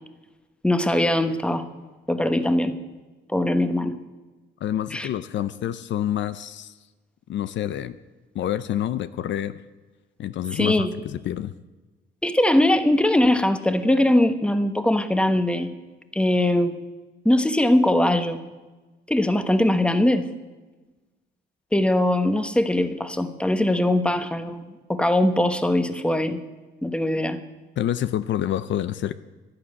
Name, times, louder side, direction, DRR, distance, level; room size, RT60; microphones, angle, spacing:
voice 1, 0.6-1.7 2.1-2.8 3.3-4.0 4.9-5.1 10.5-10.9 12.2-15.8 16.1-16.8 17.2-18.4 19.1-20.2 21.7-26.4 26.8-27.4, left 1 dB, 5° left, 9 dB, 1.2 m, -21 dB
voice 2, 4.6-6.7 7.3-8.0 8.3-9.5 10.2-11.5 27.8-29.2, left 11 dB, 65° left, 14 dB, 0.6 m, -27 dB
12.0 x 11.5 x 8.8 m, 1.2 s
cardioid pair, 90°, 20 cm